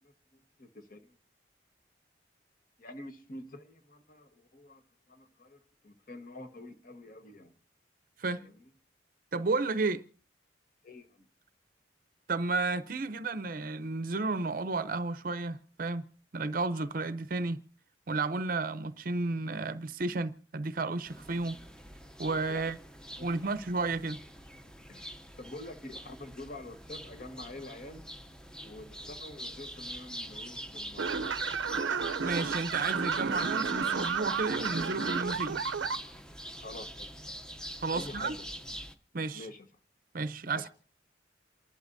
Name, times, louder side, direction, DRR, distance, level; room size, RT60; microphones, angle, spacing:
voice 1, 0.0-1.2 2.8-4.8 5.1-7.5 8.4-8.6 10.8-11.3 22.5-22.7 23.2-23.3 24.9-28.0 28.6-31.1 31.7-32.0 36.6-37.1 37.9-38.5 39.3-39.7 40.5-40.7, left 2 dB, 50° left, 1.3 m, -47 dB
voice 2, 9.3-10.0 12.3-16.0 16.3-17.6 18.1-21.6 22.2-22.8 23.2-24.2 32.2-35.6 37.8-38.3 39.1-39.5 40.1-40.7, right 3 dB, 50° right, 0.6 m, -32 dB
sound 1, 21.0-38.9, equal, 5° left, 0.6 m, -44 dB
sound 2, 31.0-36.0, right 6 dB, 90° right, 0.6 m, -32 dB
28.0 x 11.5 x 2.6 m
head